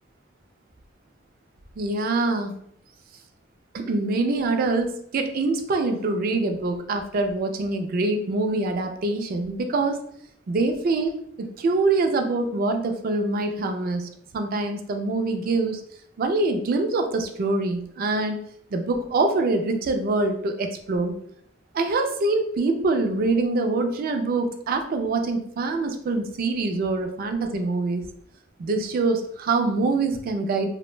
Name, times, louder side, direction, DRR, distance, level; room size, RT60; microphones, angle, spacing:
voice 1, 1.8-2.5 3.7-10.0 10.5-11.1 11.4-15.8 16.2-18.4 18.7-21.1 21.7-28.0 28.6-30.7, right 3 dB, 50° right, 5 dB, 0.3 m, -24 dB
2.5 x 2.1 x 3.0 m, 0.67 s
head